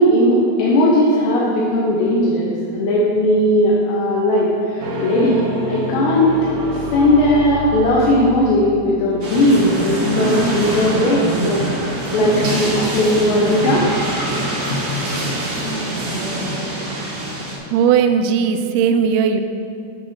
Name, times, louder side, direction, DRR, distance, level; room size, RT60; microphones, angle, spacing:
voice 1, 0.0-5.4 5.7-6.3 6.7-13.8 14.7-14.8, left 1 dB, 80° left, -4 dB, 3.2 m, -17 dB
sound 1, 4.8-8.9, right 1 dB, 70° right, 1.4 m, -27 dB
sound 2, 9.2-17.6, right 1 dB, 45° right, 1.3 m, -23 dB
voice 2, 17.7-19.4, right 7 dB, 85° right, 7 dB, 2.3 m, -17 dB
8.6 x 7.8 x 6.4 m, 2.6 s
omnidirectional pair, 4.9 m